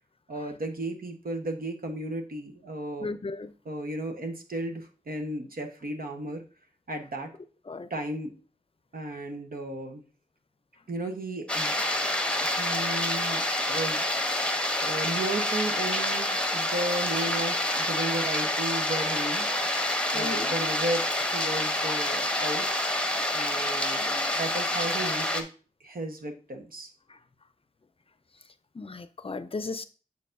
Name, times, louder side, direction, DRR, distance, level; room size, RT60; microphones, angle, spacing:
voice 1, 0.3-3.1 3.6-6.4 6.9-7.3 7.9-8.3 8.9-10.0 10.9-11.7 12.4-14.1 14.8-19.5 20.1-22.7 23.3-25.5 25.8-26.9, right 1 dB, 75° right, 1.1 m, -34 dB
voice 2, 3.0-3.5 7.7-7.9 20.1-20.5 28.8-29.9, left 3 dB, 40° left, 0.5 m, -35 dB
sound 1, 11.5-25.4, left 1 dB, 5° left, 0.9 m, -27 dB
7.0 x 6.5 x 2.6 m
wide cardioid pair, 85°, 15 cm